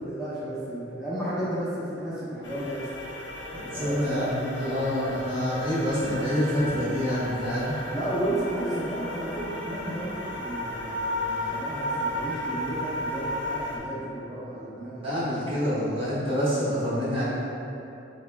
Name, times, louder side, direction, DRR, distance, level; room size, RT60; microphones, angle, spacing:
voice 1, 0.0-2.9 3.7-4.3 4.6-4.8 7.9-15.4, right 1 dB, 5° right, -13 dB, 0.5 m, -33 dB
sound 1, 2.4-13.8, left 1 dB, 70° left, 0.5 m, -34 dB
voice 2, 3.5-7.7 15.0-17.3, equal, 30° right, -10 dB, 0.9 m, -27 dB
4.1 x 2.0 x 3.3 m, 2.9 s
head